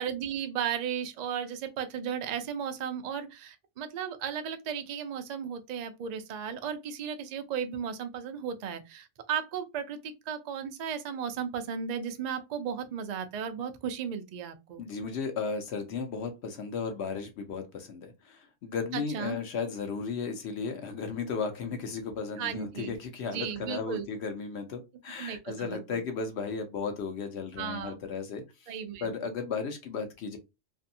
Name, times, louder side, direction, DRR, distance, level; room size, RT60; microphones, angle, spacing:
voice 1, 0.0-14.8 18.9-19.4 22.4-23.0 23.3-24.1 25.2-25.7 27.6-27.9 28.7-29.1, right 8 dB, 70° right, 0.4 m, -35 dB
voice 2, 14.8-30.4, left 5 dB, 65° left, 0.8 m, -35 dB
2.6 x 2.5 x 2.6 m
omnidirectional pair, 1.3 m